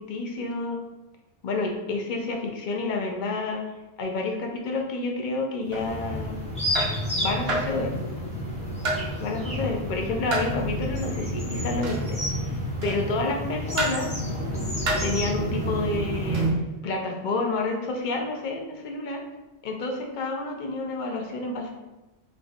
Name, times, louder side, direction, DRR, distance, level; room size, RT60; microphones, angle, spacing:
voice 1, 0.1-0.8 1.4-3.6 4.0-6.4 7.2-8.0 9.2-14.1 15.0-16.5 16.8-19.2 19.6-21.7, left 3 dB, 60° left, 2 dB, 0.5 m, -29 dB
sound 1, 5.7-16.5, equal, 10° left, 0.5 m, -30 dB
sound 2, 5.7-5.9 6.7-7.0 7.5-7.8 8.8-9.1 10.3-10.6 11.8-12.1 12.8-13.1 13.8-14.1 14.8-15.1 16.3-16.5, right 2 dB, 60° right, 0.9 m, -29 dB
3.9 x 2.3 x 3.4 m, 1.0 s
omnidirectional pair, 1.3 m